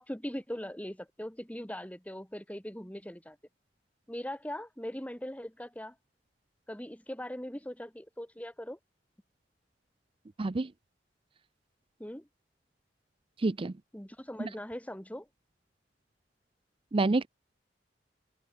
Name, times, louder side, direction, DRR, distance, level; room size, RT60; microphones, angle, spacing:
voice 1, 0.0-3.4 4.1-5.9 6.7-8.8 12.0-12.3 13.9-15.3, equal, 10° left, 3.0 m, -40 dB
voice 2, 10.4-10.7 13.4-13.7 16.9-17.3, right 3 dB, 30° right, 0.5 m, -27 dB
head